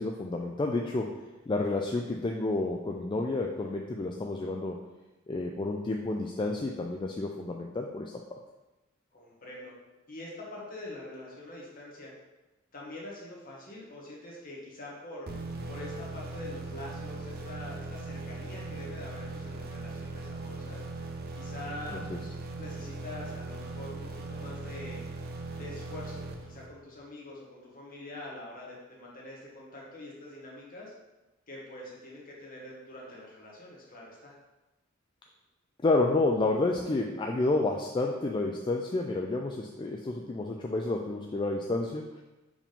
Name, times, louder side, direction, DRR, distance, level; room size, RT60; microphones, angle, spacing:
voice 1, 0.0-4.8 5.3-8.4 21.9-22.2 35.8-42.2, left 2 dB, 25° left, 1 dB, 0.4 m, -30 dB
voice 2, 9.1-9.7 10.1-12.1 12.7-15.3 15.6-20.8 21.3-22.0 22.6-25.0 25.6-30.9 31.5-34.3, left 2 dB, 45° left, -4 dB, 1.6 m, -44 dB
sound 1, 15.3-27.0, right 3 dB, 50° right, 0.6 m, -39 dB
4.9 x 3.6 x 5.3 m, 1.1 s
head